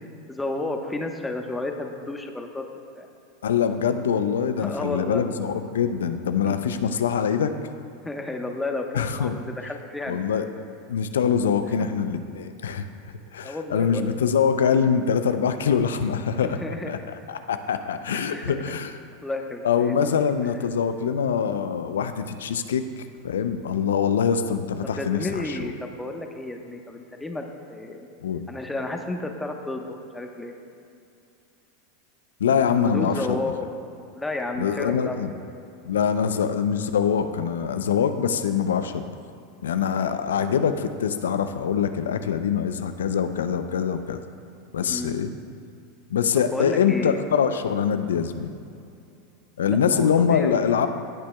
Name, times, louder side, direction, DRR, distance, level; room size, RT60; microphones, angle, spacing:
voice 1, 0.3-2.6 2.9-3.1 4.6-5.2 6.4-6.6 8.0-10.2 11.7-11.9 13.4-14.1 16.4-17.1 18.1-18.6 19.2-19.9 24.8-27.4 27.7-28.1 28.5-30.6 32.8-33.5 33.8-35.4 44.8-45.3 46.5-47.2 49.6-50.7, left 2 dB, 10° left, 3 dB, 1.1 m, -32 dB
voice 2, 3.4-7.5 8.9-9.4 10.1-10.5 10.9-12.9 13.3-17.0 17.3-18.9 19.6-25.7 28.2-28.4 32.4-33.4 34.6-35.3 35.8-39.1 39.6-44.2 44.7-45.3 46.1-48.5 49.6-50.9, left 7 dB, 80° left, 9 dB, 0.5 m, -24 dB
17.0 x 8.7 x 2.3 m, 2.6 s
hypercardioid pair, 90°, 0 cm